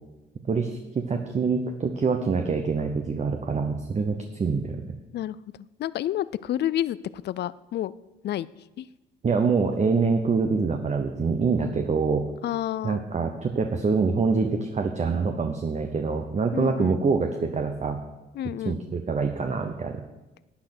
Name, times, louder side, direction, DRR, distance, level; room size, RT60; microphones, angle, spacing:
voice 1, 0.4-4.9 9.2-12.2 12.8-18.0 18.6-20.0, right 4 dB, 35° right, 5 dB, 1.0 m, -25 dB
voice 2, 5.8-7.9 8.2-8.5 8.8-8.9 12.4-13.0 16.5-17.0 18.4-18.8, left 12 dB, 60° left, 18 dB, 0.4 m, -29 dB
11.5 x 8.8 x 6.0 m, 1.1 s
cardioid pair, 90°, 20 cm